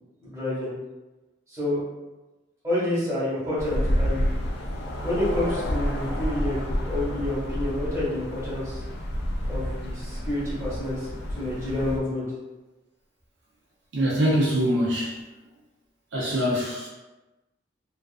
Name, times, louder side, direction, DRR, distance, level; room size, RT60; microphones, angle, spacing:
voice 1, 0.2-0.7 1.5-1.8 2.6-4.3 5.0-6.6 6.8-8.8 9.5-12.3, left 1 dB, 15° right, -10 dB, 1.0 m, -28 dB
sound 1, 3.6-12.0, equal, 60° left, 0.4 m, -29 dB
voice 2, 13.9-15.2 16.1-16.9, equal, 70° right, -4 dB, 0.5 m, -23 dB
2.4 x 2.4 x 2.4 m, 1.1 s
head